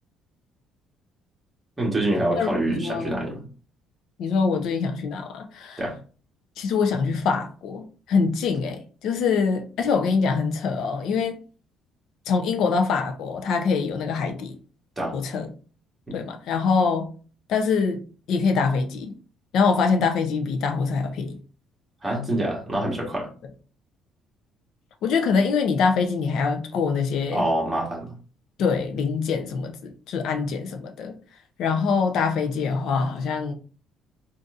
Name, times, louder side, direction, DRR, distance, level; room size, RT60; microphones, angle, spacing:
voice 1, 1.8-3.4 5.8-5.9 15.0-15.1 16.1-16.2 22.0-23.3 27.3-28.1, right 1 dB, 10° right, 1.3 m, -26 dB
voice 2, 2.4-3.2 4.2-5.8 6.6-11.4 12.3-14.6 15.1-15.5 16.1-17.1 17.5-18.0 18.3-19.1 19.5-21.4 25.0-27.4 28.6-31.2 31.6-33.5, left 5 dB, 60° left, 0.6 m, -24 dB
3.9 x 2.5 x 2.5 m
cardioid pair, 155°, 0 cm